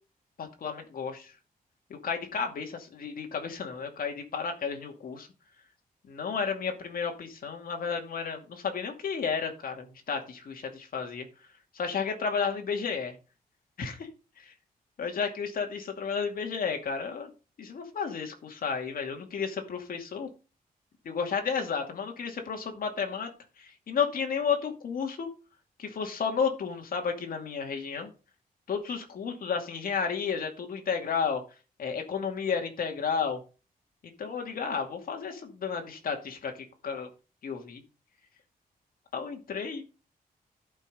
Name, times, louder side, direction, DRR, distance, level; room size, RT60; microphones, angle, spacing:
voice 1, 0.4-1.3 1.9-5.3 6.1-11.3 11.7-13.1 13.8-14.1 15.0-17.3 17.6-20.3 21.0-23.3 23.6-25.3 25.8-28.1 28.7-31.4 31.8-33.4 34.2-36.5 36.8-37.1 37.4-37.8 39.1-39.8, left 6 dB, 70° left, 3 dB, 2.4 m, -32 dB
11.5 x 5.6 x 5.4 m, 0.33 s
wide cardioid pair, 130°, 16 cm